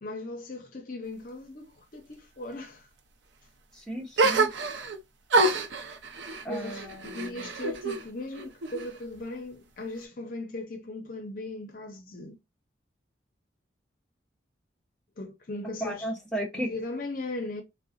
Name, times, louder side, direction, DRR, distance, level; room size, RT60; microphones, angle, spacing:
voice 1, 0.0-2.9 6.5-12.4 15.2-16.1 16.5-17.6, left 2 dB, 50° left, 0.6 m, -38 dB
voice 2, 3.7-4.5 6.4-7.5 15.8-16.7, right 1 dB, 5° left, 0.7 m, -35 dB
sound 1, 4.2-5.0 5.3-8.0 8.3-9.2, right 3 dB, 75° right, 0.5 m, -27 dB
3.8 x 2.1 x 2.4 m
head